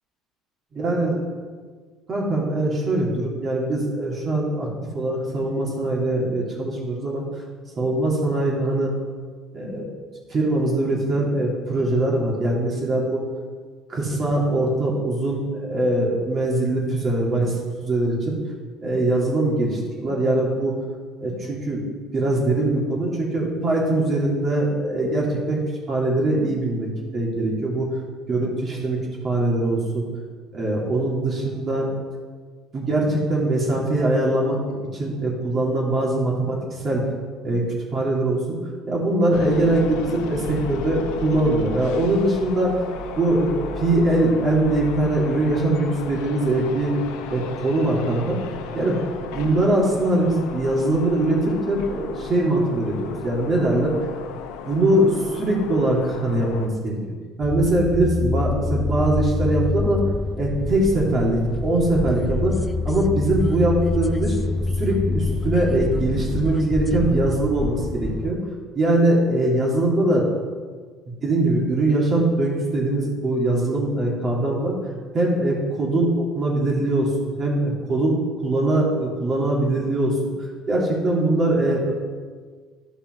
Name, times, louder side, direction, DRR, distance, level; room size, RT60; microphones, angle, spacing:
voice 1, 0.8-1.2 2.1-7.2 7.8-8.9 9.5-9.9 10.3-13.2 13.9-17.5 17.8-18.4 18.8-20.8 21.2-21.8 22.1-25.6 25.9-27.9 28.3-29.0 29.2-30.1 30.5-31.9 32.7-37.0 37.4-37.6 37.9-38.6 38.9-42.8 43.1-43.5 43.8-46.9 47.3-48.4 48.7-49.0 49.3-53.9 54.6-57.0 57.4-60.0 60.3-62.5 62.8-64.4 64.8-68.4 68.7-70.3 71.1-74.8 75.1-80.1 80.7-81.9, right 1 dB, 35° right, -3 dB, 3.1 m, -22 dB
sound 1, 39.3-56.7, left 5 dB, 85° left, 0.8 m, -35 dB
sound 2, 57.4-68.3, left 3 dB, 15° left, 0.5 m, -26 dB
12.0 x 5.6 x 4.8 m, 1.5 s
supercardioid pair, 105°, 0 cm